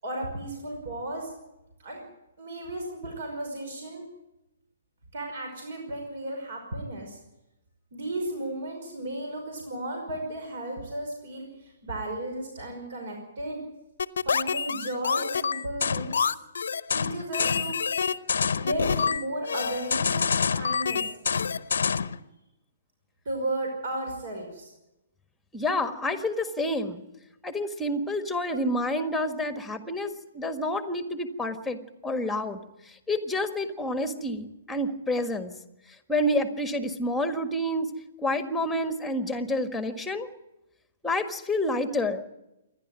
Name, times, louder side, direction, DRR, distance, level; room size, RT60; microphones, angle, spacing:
voice 1, 0.0-1.3 1.8-2.0 2.4-4.1 5.1-7.2 7.9-13.6 14.2-16.3 16.9-17.7 18.6-21.1 23.3-24.7, right 1 dB, 55° right, 2 dB, 5.4 m, -34 dB
sound 1, 14.0-22.2, left 6 dB, 65° left, 0.7 m, -27 dB
voice 2, 25.5-27.0 27.4-35.5 36.1-37.9 38.2-40.3 41.0-42.2, left 1 dB, 5° left, 8 dB, 1.6 m, -29 dB
27.0 x 11.5 x 9.1 m, 0.96 s
figure-of-eight pair, 125°, 0 cm